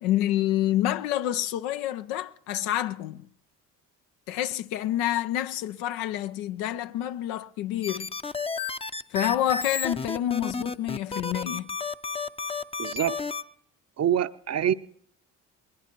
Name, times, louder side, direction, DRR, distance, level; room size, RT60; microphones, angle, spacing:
voice 1, 0.0-3.3 4.3-8.1 9.1-11.7, left 13 dB, 85° left, 0.6 m, -28 dB
Warning Sign, 7.8-13.4, left 4 dB, 15° left, 0.5 m, -32 dB
voice 2, 12.8-13.2 14.0-14.7, right 10 dB, 40° right, 0.6 m, -25 dB
20.5 x 20.5 x 3.0 m
hypercardioid pair, 50°, 41 cm